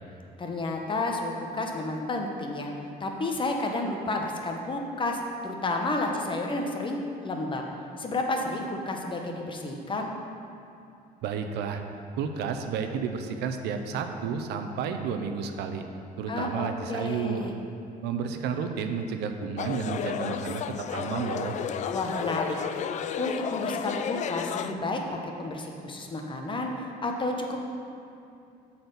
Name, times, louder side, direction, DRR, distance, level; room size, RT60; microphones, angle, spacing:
voice 1, 0.4-2.7 3.0-7.6 8.0-10.1 16.3-17.5 21.9-22.6 23.2-27.6, left 2 dB, 30° left, 2 dB, 1.0 m, -31 dB
voice 2, 11.2-11.8 12.2-15.8 16.2-17.5 18.0-20.6 20.9-21.6, right 6 dB, 85° right, 6 dB, 0.6 m, -31 dB
sound 1, 19.6-24.7, left 8 dB, 45° left, 0.4 m, -32 dB
8.0 x 4.3 x 6.8 m, 2.6 s
cardioid pair, 110°, 17 cm